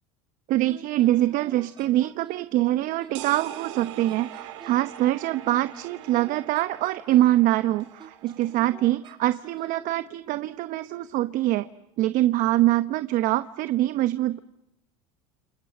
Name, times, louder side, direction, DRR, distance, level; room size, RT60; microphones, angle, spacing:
voice 1, 0.5-11.7 12.0-14.4, right 15 dB, 60° right, 12 dB, 1.0 m, -24 dB
Wind instrument woodwind instrument, 0.7-2.5 3.0-4.9 5.4-7.4 8.0-9.8, right 5 dB, 30° right, 6.6 m, -48 dB
sound 1, 3.1-8.7, right 13 dB, 85° right, 3.3 m, -42 dB
30.0 x 29.0 x 6.8 m, 0.92 s
supercardioid pair, 90°, 16 cm